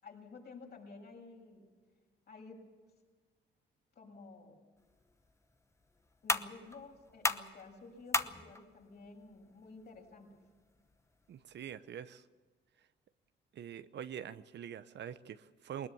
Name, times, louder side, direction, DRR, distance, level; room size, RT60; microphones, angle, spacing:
voice 1, 0.0-1.7 2.3-2.7 4.0-4.6 6.2-10.5, left 3 dB, 55° left, 0 dB, 7.3 m, -52 dB
sound 1, 4.8-11.8, left 2 dB, 15° left, 1.0 m, -40 dB
voice 2, 11.3-12.2 13.5-15.9, right 9 dB, 60° right, 13 dB, 0.9 m, -44 dB
20.5 x 20.5 x 7.1 m, 1.4 s
cardioid pair, 90°, 20 cm